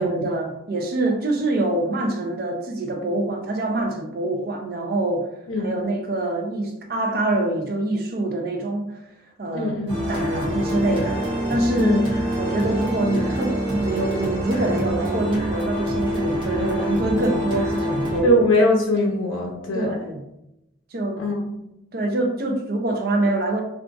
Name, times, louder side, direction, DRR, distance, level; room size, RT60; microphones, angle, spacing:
voice 1, 0.0-5.3 5.6-8.9 9.4-9.8 10.1-11.2 11.5-12.1 12.4-18.4 19.7-20.2 20.9-21.2 21.9-23.6, right 2 dB, 50° right, 3 dB, 0.5 m, -25 dB
voice 2, 9.5-10.0 11.8-12.0 18.2-20.0 21.2-21.4, left 1 dB, 80° left, 0 dB, 0.5 m, -21 dB
sound 1, 9.9-18.2, equal, 25° right, 0.9 m, -26 dB
2.4 x 2.3 x 3.8 m, 0.87 s
head